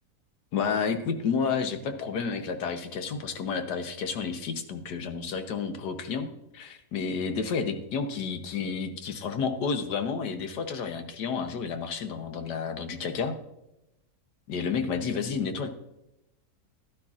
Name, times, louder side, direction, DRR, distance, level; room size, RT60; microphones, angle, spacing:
voice 1, 0.5-6.3 6.5-13.4 14.5-15.7, left 5 dB, 90° left, 7 dB, 1.6 m, -30 dB
16.0 x 11.5 x 2.5 m, 0.90 s
omnidirectional pair, 1.7 m